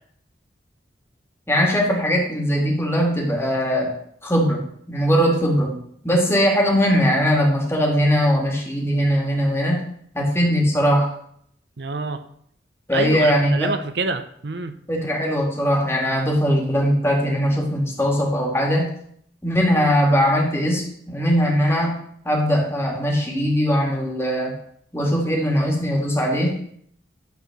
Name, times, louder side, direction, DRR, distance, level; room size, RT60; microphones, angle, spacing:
voice 1, 1.5-3.9 4.2-4.6 4.9-5.7 6.0-9.9 10.1-11.1 12.9-13.7 14.9-18.9 19.4-22.0 22.2-24.5 24.9-26.6, equal, 15° left, -1 dB, 2.5 m, -20 dB
voice 2, 11.8-12.2 12.9-14.7, right 3 dB, 65° right, 10 dB, 0.7 m, -27 dB
12.5 x 4.7 x 6.7 m, 0.66 s
head